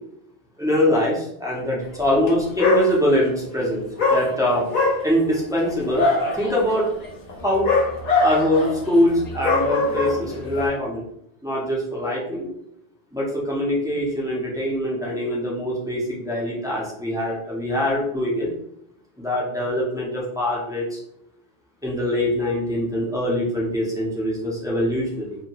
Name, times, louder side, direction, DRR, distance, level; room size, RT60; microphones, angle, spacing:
voice 1, 0.6-3.8 4.1-4.6 5.0-6.1 6.3-6.9 7.4-7.7 8.2-11.0 11.4-12.5 13.1-18.5 19.2-21.0 21.8-25.4, left 1 dB, 5° right, -5 dB, 0.4 m, -23 dB
Dog, 2.1-2.3 2.6-3.3 4.0-10.7, left 3 dB, 50° left, 0.6 m, -23 dB
2.7 x 2.2 x 2.8 m, 0.77 s
omnidirectional pair, 1.1 m